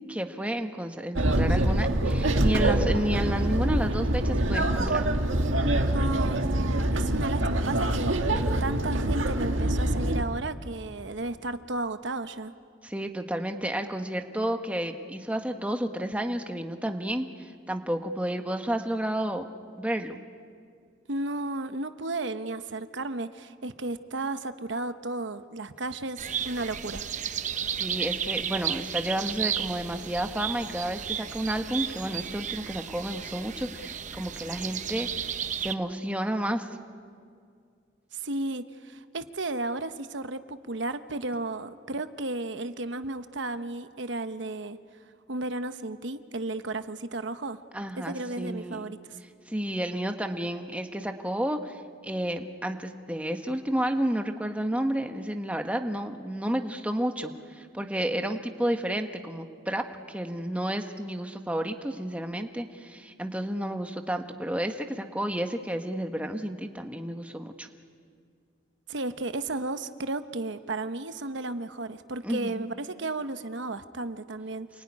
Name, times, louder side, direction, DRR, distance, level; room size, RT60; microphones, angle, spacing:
voice 1, 0.1-5.1 12.8-17.3 17.7-19.5 19.8-20.2 27.8-35.3 35.6-36.7 47.7-48.9 49.5-67.7 72.2-72.7, right 1 dB, 5° right, 5 dB, 1.3 m, -31 dB
sound 1, 1.2-10.2, right 1 dB, 85° right, 1.8 m, -25 dB
voice 2, 5.9-12.5 21.1-27.0 38.1-44.8 45.3-47.6 48.0-49.2 68.9-74.7, right 2 dB, 70° right, 10 dB, 1.0 m, -34 dB
sound 2, 26.2-35.7, right 8 dB, 40° right, 0.8 m, -33 dB
28.0 x 21.5 x 9.9 m, 2.2 s
head